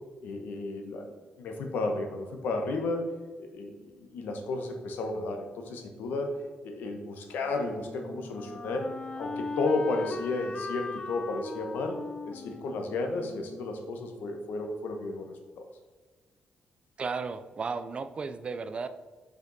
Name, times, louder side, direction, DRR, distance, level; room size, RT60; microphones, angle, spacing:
voice 1, 0.2-1.1 1.4-3.1 3.4-6.4 6.6-8.9 9.2-12.0 12.2-15.7, left 2 dB, 85° left, 4 dB, 1.0 m, -33 dB
Wind instrument woodwind instrument, 7.4-14.3, left 3 dB, 30° left, 0.5 m, -39 dB
voice 2, 17.0-18.9, right 4 dB, 35° right, 11 dB, 0.4 m, -34 dB
5.2 x 5.1 x 3.9 m, 1.3 s
cardioid pair, 120°, 3 cm